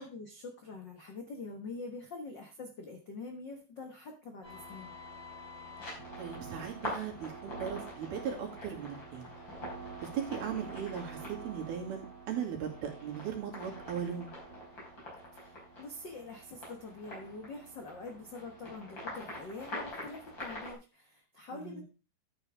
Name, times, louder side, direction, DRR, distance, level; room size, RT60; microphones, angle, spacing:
voice 1, 0.0-4.9 15.3-21.8, left 3 dB, 75° left, 3 dB, 1.0 m, -45 dB
sound 1, 4.4-20.7, equal, 30° left, 5.6 m, -45 dB
voice 2, 5.8-9.4 10.0-14.3 21.5-21.8, right 8 dB, 90° right, -1 dB, 4.4 m, -38 dB
12.0 x 8.8 x 3.5 m, 0.31 s
omnidirectional pair, 4.3 m